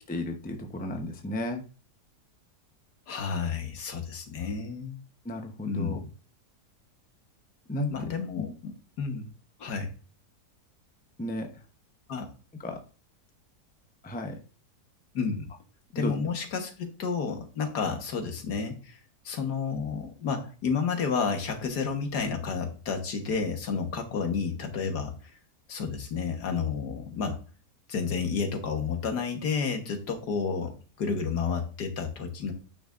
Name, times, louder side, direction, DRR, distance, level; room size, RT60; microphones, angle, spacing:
voice 1, 0.1-1.6 5.2-6.0 7.7-7.9 8.4-8.5 11.2-11.5 12.6-12.8 14.0-14.3 16.0-16.1, left 1 dB, 10° left, 4 dB, 0.6 m, -33 dB
voice 2, 3.1-5.0 5.7-6.0 7.9-9.3 9.6-9.9 12.1-12.3 15.1-15.5 15.9-19.0 19.3-25.1 25.7-27.4 27.9-32.5, left 5 dB, 75° left, 5 dB, 1.9 m, -31 dB
9.0 x 5.8 x 2.5 m, 0.36 s
omnidirectional pair, 1.7 m